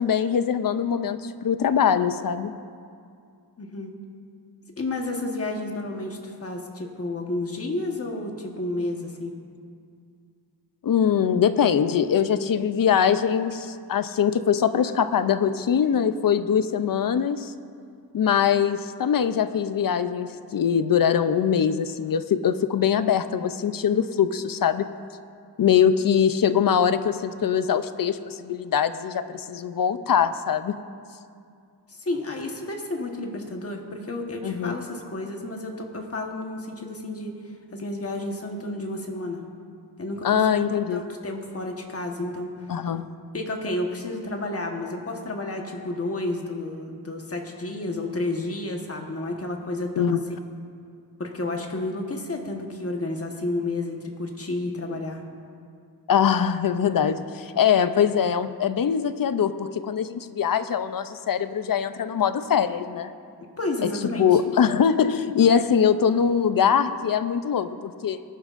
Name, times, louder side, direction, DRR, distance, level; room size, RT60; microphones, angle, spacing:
voice 1, 0.0-2.5 10.8-17.5 18.1-24.9 25.6-30.8 34.4-34.8 40.2-41.1 42.7-43.1 50.0-50.2 56.1-63.1 63.8-63.9 64.2-68.2, left 8 dB, 60° left, 12 dB, 0.5 m, -22 dB
voice 2, 3.6-3.9 4.8-9.4 31.9-37.3 37.7-39.4 40.0-40.4 40.9-42.8 43.3-50.2 51.2-55.2 63.6-64.4, left 2 dB, 35° left, 2 dB, 1.3 m, -31 dB
21.0 x 11.0 x 2.5 m, 2.3 s
wide cardioid pair, 140°, 40 cm